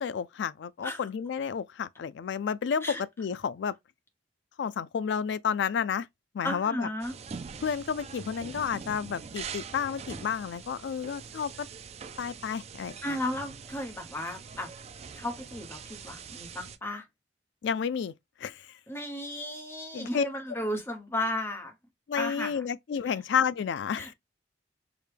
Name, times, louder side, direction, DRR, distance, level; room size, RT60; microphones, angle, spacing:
voice 1, 0.0-3.7 4.6-6.1 6.3-6.9 7.6-11.7 12.2-13.2 17.6-18.1 18.4-18.8 19.9-20.3 22.1-24.1, left 7 dB, 65° left, 0.3 m, -31 dB
voice 2, 6.4-7.1 13.0-14.7 15.2-17.1 18.9-21.7 22.2-22.6 23.0-23.2 24.0-24.1, left 1 dB, 15° left, 0.9 m, -34 dB
sound 1, 7.0-16.8, right 5 dB, 35° right, 0.3 m, -43 dB
4.9 x 2.2 x 3.2 m
head